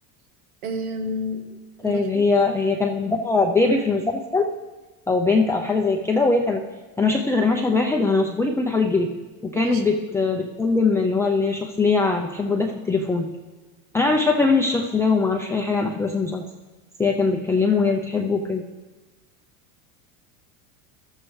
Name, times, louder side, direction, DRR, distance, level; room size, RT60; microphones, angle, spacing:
voice 1, 0.6-2.3 9.5-9.8, left 1 dB, 90° right, 6 dB, 1.5 m, -31 dB
voice 2, 1.8-4.5 5.1-6.6 7.0-9.1 9.4-13.3 13.9-16.5 17.0-18.7, left 3 dB, 5° left, 0 dB, 0.4 m, -21 dB
14.0 x 12.5 x 3.2 m, 1.2 s
supercardioid pair, 120°, 42 cm